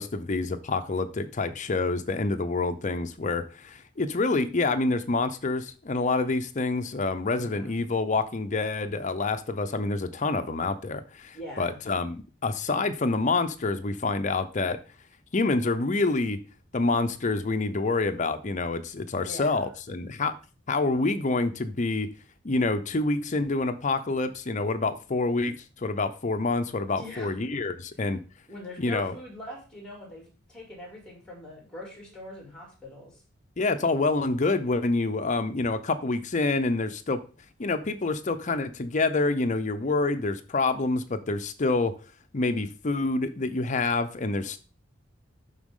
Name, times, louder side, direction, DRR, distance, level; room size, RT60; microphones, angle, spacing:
voice 1, 0.0-14.8 15.3-16.4 16.7-20.3 20.7-22.1 22.4-28.2 28.8-29.1 33.6-37.2 37.6-42.0 42.3-44.6, left 3 dB, 40° left, 0.6 m, -27 dB
voice 2, 7.3-7.8 11.3-11.8 19.1-19.6 26.9-27.3 28.5-33.2, left 1 dB, 5° left, 2.7 m, -42 dB
11.5 x 4.1 x 3.7 m
head